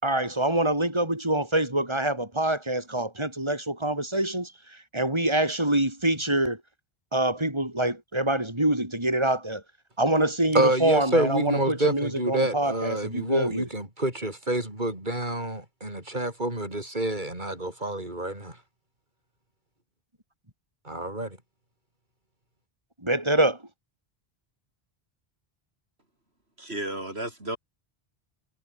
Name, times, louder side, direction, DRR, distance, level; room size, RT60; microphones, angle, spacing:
voice 1, 0.0-4.5 4.9-6.6 7.1-9.6 10.0-13.7 23.0-23.6, right 1 dB, 25° right, 5.3 m, -25 dB
voice 2, 10.5-18.5 20.9-21.3, right 1 dB, 50° right, 6.5 m, -28 dB
voice 3, 26.6-27.6, right 1 dB, 85° right, 8.0 m, -33 dB
omnidirectional pair, 1.0 m